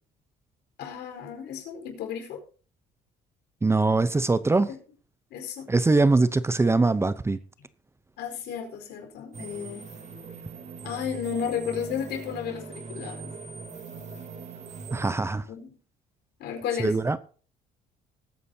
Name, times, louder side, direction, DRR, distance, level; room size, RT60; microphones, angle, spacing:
voice 1, 0.8-2.4 4.7-4.8 5.3-5.7 8.2-9.9 10.8-13.3 15.5-15.8 16.4-17.0, left 8 dB, 80° left, 4.6 m, -33 dB
voice 2, 3.6-4.7 5.7-7.4 14.9-15.4 16.8-17.2, right 3 dB, 15° right, 0.8 m, -22 dB
sound 1, 9.3-15.1, right 4 dB, 45° right, 3.3 m, -41 dB
20.0 x 9.3 x 2.9 m
cardioid pair, 110°, 17 cm